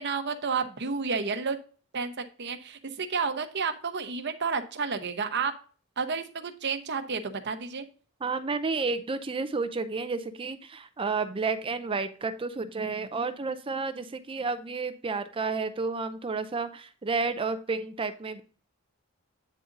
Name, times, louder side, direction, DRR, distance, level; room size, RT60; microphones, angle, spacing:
voice 1, 0.0-1.6 1.9-5.5 6.0-7.9, right 5 dB, 55° right, 7 dB, 0.8 m, -31 dB
voice 2, 8.2-18.4, right 4 dB, 25° right, 11 dB, 0.5 m, -31 dB
9.1 x 3.9 x 3.8 m, 0.39 s
head